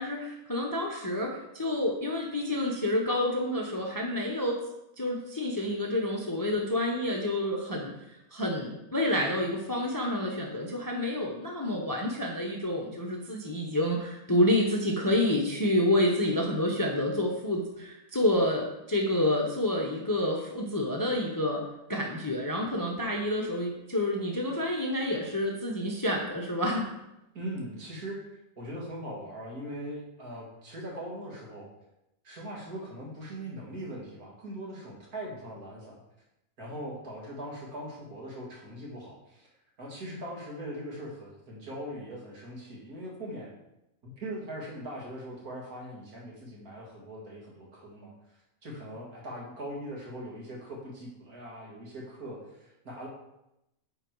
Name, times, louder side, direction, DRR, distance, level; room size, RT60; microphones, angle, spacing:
voice 1, 0.0-4.6 5.0-7.9 8.3-21.6 21.9-26.8, left 1 dB, 20° left, 0 dB, 0.7 m, -28 dB
voice 2, 27.3-28.2 28.6-31.7 32.2-36.0 36.6-39.5 39.8-43.5 44.0-48.1 48.6-53.1, right 1 dB, 75° right, -3 dB, 2.4 m, -40 dB
9.1 x 3.9 x 4.6 m, 0.87 s
omnidirectional pair, 1.6 m